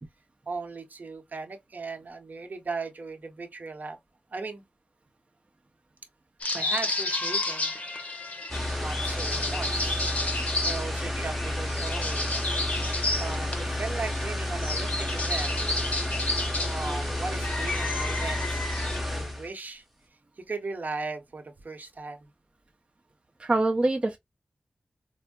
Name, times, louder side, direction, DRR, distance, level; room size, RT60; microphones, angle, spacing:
voice 1, 0.5-4.0 4.3-4.6 6.5-7.7 8.8-10.1 10.4-12.2 12.9-15.5 16.6-18.7 19.1-19.8 20.5-22.3, right 4 dB, 65° right, 0.8 m, -37 dB
sound 1, 6.4-19.0, left 2 dB, 50° left, 1.0 m, -32 dB
sound 2, 8.5-19.5, left 1 dB, ahead, 1.0 m, -31 dB
voice 2, 23.4-24.2, right 2 dB, 35° right, 0.6 m, -25 dB
4.3 x 2.0 x 2.2 m
wide cardioid pair, 70°, 3 cm